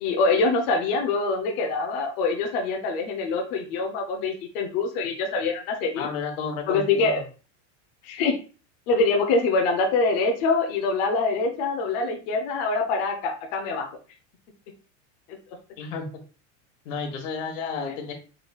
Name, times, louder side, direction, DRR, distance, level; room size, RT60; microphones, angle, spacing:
voice 1, 0.0-6.1 6.7-7.2 8.0-8.4 8.9-13.9 15.3-15.4 17.6-17.9, left 3 dB, 45° left, 1 dB, 0.7 m, -24 dB
voice 2, 5.9-7.2 15.8-16.1 16.8-18.1, left 5 dB, 85° left, 3 dB, 1.4 m, -32 dB
5.0 x 3.1 x 2.3 m, 0.36 s
supercardioid pair, 170°, 37 cm